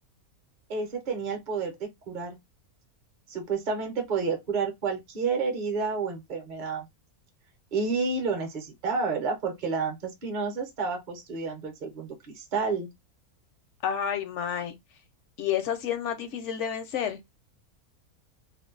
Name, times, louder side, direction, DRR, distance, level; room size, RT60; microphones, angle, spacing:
voice 1, 0.7-2.4 3.3-6.9 7.7-12.9, right 4 dB, 45° right, 0.7 m, -30 dB
voice 2, 13.8-14.7 15.4-17.2, left 9 dB, 65° left, 0.7 m, -30 dB
2.6 x 2.2 x 3.7 m
omnidirectional pair, 1.6 m